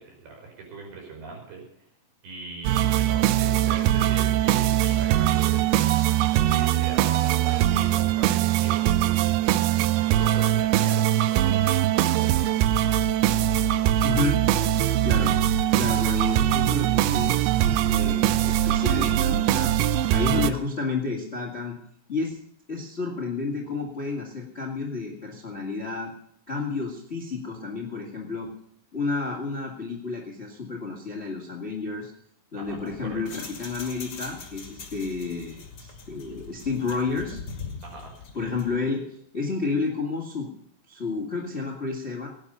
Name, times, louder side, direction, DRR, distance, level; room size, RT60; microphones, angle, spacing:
voice 1, 0.0-1.7 2.2-5.7 6.3-11.6 11.9-12.7 32.6-33.2 37.8-38.2, right 4 dB, 60° right, 0 dB, 6.8 m, -41 dB
sound 1, 2.6-20.5, right 12 dB, 85° right, 2.2 m, -22 dB
voice 2, 14.0-14.4 15.0-15.4 15.7-17.4 17.6-19.7 20.1-21.8 22.1-22.4 22.7-26.1 26.5-28.5 28.9-32.1 32.5-37.4 38.3-40.5 40.9-42.3, left 4 dB, 70° left, -1 dB, 0.6 m, -31 dB
sound 2, 32.6-38.8, left 5 dB, 40° left, 2.3 m, -42 dB
17.0 x 10.0 x 5.5 m, 0.71 s
omnidirectional pair, 5.1 m